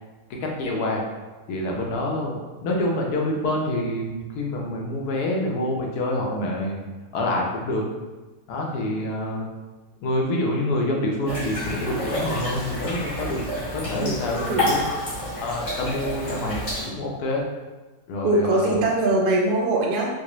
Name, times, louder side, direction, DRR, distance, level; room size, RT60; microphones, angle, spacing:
voice 1, 0.4-1.0 1.5-2.3 2.6-6.8 7.1-7.8 8.5-9.5 10.0-13.4 13.7-14.8 15.4-17.5 18.1-18.9, left 1 dB, 80° left, -1 dB, 1.2 m, -26 dB
sound 1, 11.3-16.9, left 1 dB, 45° left, 1.6 m, -29 dB
voice 2, 13.9-14.7 18.2-20.1, right 2 dB, 85° right, -2 dB, 1.1 m, -22 dB
4.8 x 2.0 x 2.9 m, 1.2 s
omnidirectional pair, 1.7 m